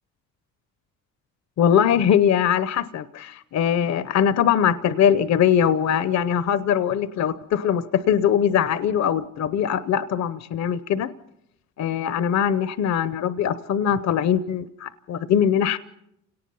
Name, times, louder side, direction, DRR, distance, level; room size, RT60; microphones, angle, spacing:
voice 1, 1.6-11.1 11.8-15.8, left 9 dB, 65° left, 14 dB, 0.8 m, -21 dB
29.5 x 18.0 x 5.6 m, 0.81 s
cardioid pair, 90°, 30 cm